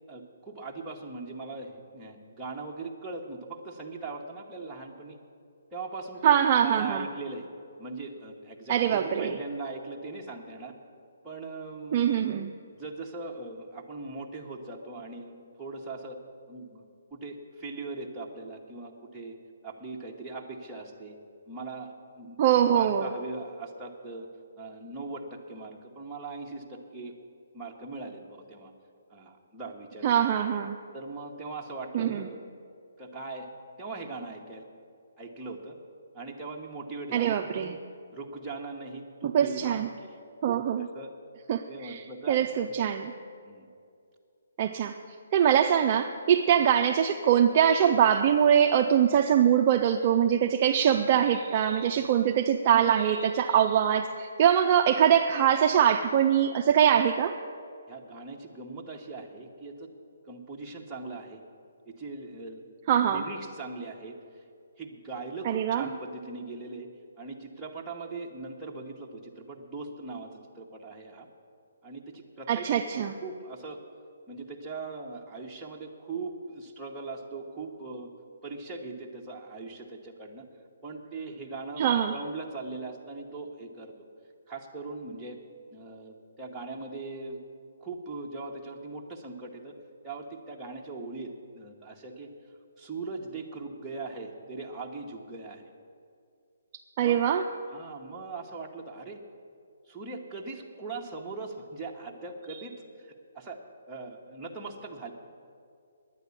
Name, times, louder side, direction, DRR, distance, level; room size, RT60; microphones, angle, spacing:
voice 1, 0.1-5.2 5.7-7.5 7.8-10.7 11.2-12.1 12.6-16.2 16.5-16.8 17.1-19.4 19.6-21.2 21.5-22.4 22.7-24.3 24.6-27.1 27.5-28.7 29.1-30.4 30.9-32.4 33.0-33.5 33.8-34.6 35.2-35.8 36.1-37.3 38.1-40.2 40.8-41.1 41.7-42.5 43.4-43.7 51.8-52.1 57.9-59.9 60.3-61.4 61.9-62.6 63.1-64.1 64.8-66.9 67.2-71.3 71.8-72.7 73.2-73.8 74.3-78.1 78.4-80.5 80.8-83.9 84.5-85.4 85.7-87.4 87.8-89.7 90.0-92.3 92.8-95.7 97.0-97.2 97.7-99.2 99.9-103.6 103.9-105.1, right 3 dB, 5° right, -4 dB, 1.0 m, -40 dB
voice 2, 6.2-7.1 8.7-9.3 11.9-12.5 22.4-23.1 30.0-30.8 31.9-32.3 37.1-37.8 39.3-39.9 40.4-40.9 41.5-42.0 42.3-43.1 44.6-44.9 45.3-57.3 62.9-63.2 65.4-65.9 72.5-73.2 81.8-82.1 97.0-97.4, right 9 dB, 30° right, 4 dB, 0.4 m, -23 dB
10.5 x 9.5 x 8.3 m, 2.4 s
hypercardioid pair, 170°, 0 cm